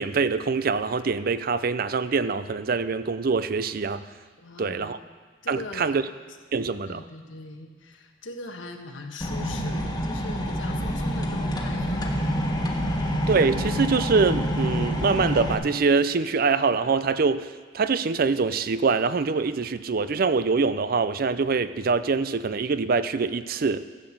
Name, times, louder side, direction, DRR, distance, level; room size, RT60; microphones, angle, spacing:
voice 1, 0.0-4.0 4.6-5.0 5.5-6.0 6.5-7.0 13.3-17.5 17.7-23.8, right 4 dB, 50° right, 13 dB, 0.5 m, -24 dB
voice 2, 4.4-4.9 5.4-6.0 6.9-12.1, left 2 dB, 85° left, 4 dB, 1.4 m, -40 dB
sound 1, 9.2-15.5, equal, 20° left, 1.3 m, -27 dB
14.0 x 7.9 x 7.4 m, 1.5 s
head